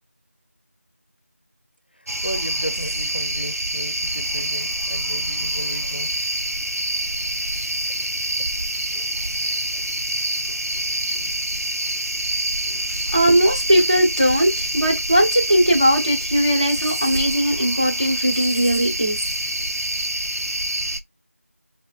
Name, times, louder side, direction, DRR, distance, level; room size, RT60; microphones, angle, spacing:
sound 1, 2.1-21.0, right 1 dB, 70° right, 0.6 m, -26 dB
voice 1, 2.2-6.1, equal, 40° left, 0.6 m, -34 dB
voice 2, 13.1-19.2, equal, 25° right, 0.6 m, -19 dB
5.6 x 2.3 x 2.4 m
figure-of-eight pair, 180°, 8 cm